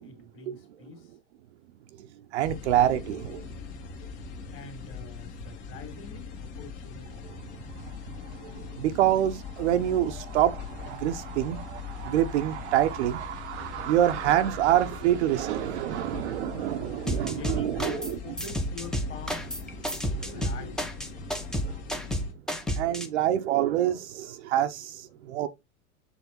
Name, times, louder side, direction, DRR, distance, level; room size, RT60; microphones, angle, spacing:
voice 1, 0.0-1.1 4.5-7.3 17.2-19.5 20.2-20.8, left 4 dB, 30° left, 2.2 m, -44 dB
voice 2, 2.0-3.5 7.7-18.2 19.9-20.4 21.4-21.8 22.7-25.5, right 12 dB, 50° right, 0.8 m, -27 dB
sound 1, 2.4-22.3, left 5 dB, 55° left, 1.8 m, -41 dB
sound 2, 17.1-18.1 18.4-23.1, equal, ahead, 0.8 m, -30 dB
7.1 x 3.4 x 4.1 m
figure-of-eight pair, 100°, 42 cm